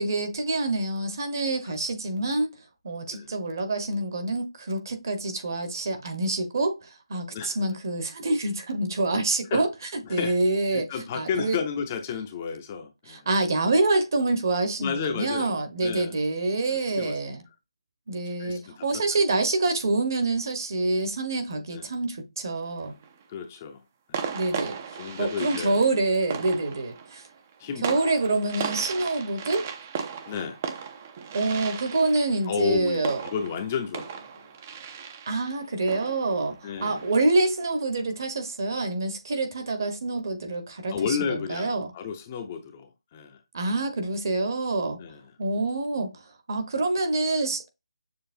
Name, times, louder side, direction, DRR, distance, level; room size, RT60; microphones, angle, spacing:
voice 1, 0.0-2.5 2.8-9.7 10.1-10.9 11.1-11.6 13.1-17.4 18.1-22.9 24.3-24.8 25.2-27.2 27.8-29.7 31.3-33.2 35.3-41.9 43.5-45.0 45.4-46.1 46.5-47.7, right 2 dB, 45° right, 1.2 m, -26 dB
voice 2, 10.0-10.3 10.7-13.3 14.8-15.5 15.8-16.1 16.7-17.2 18.4-19.0 21.7-21.9 23.3-23.8 24.1-24.4 25.0-25.8 27.6-28.0 30.3-30.6 32.5-34.5 36.6-37.1 40.9-43.4 45.0-45.3, left 6 dB, 20° left, 0.6 m, -32 dB
sound 1, 22.6-23.2 24.1-37.5, right 7 dB, 25° right, 0.5 m, -37 dB
6.8 x 2.9 x 2.6 m
hypercardioid pair, 170°, 3 cm